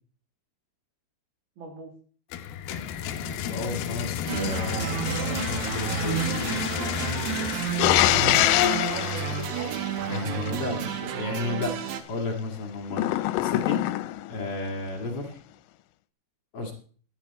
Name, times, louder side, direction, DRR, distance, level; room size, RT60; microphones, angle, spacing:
voice 1, 1.6-1.9 8.1-9.8, right 3 dB, 60° right, 2 dB, 4.6 m, -39 dB
sound 1, 2.3-10.1, left 9 dB, 70° left, 2.6 m, -33 dB
voice 2, 3.1-6.6 10.1-13.8 14.3-15.4 16.5-16.7, left 3 dB, 40° left, 1 dB, 2.7 m, -33 dB
sound 2, 4.3-12.0, right 8 dB, 75° right, 2.1 m, -31 dB
sound 3, 7.8-10.5 12.9-14.3, left 16 dB, 90° left, 3.0 m, -24 dB
12.5 x 11.0 x 4.3 m, 0.43 s
omnidirectional pair, 5.3 m